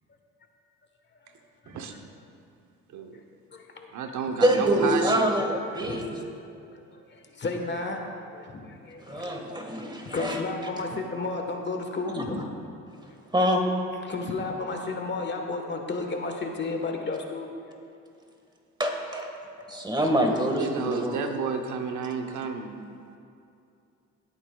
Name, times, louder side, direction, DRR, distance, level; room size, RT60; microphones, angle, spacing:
voice 1, 1.6-2.0 3.1-3.2 3.5-4.1 5.7-6.1 6.4-8.0 8.3-9.3 10.0-12.5 13.1-13.2 14.0-17.5, left 3 dB, 35° left, 3 dB, 1.3 m, -33 dB
voice 2, 2.9-3.2 3.9-5.3 20.6-23.1, right 5 dB, 75° right, 5 dB, 0.9 m, -31 dB
voice 3, 4.4-6.1 9.1-10.4 12.2-12.3 13.3-13.6 18.8-19.3 19.7-21.2, equal, 15° right, 2 dB, 1.6 m, -25 dB
18.0 x 8.9 x 2.3 m, 2.6 s
cardioid pair, 90°, 30 cm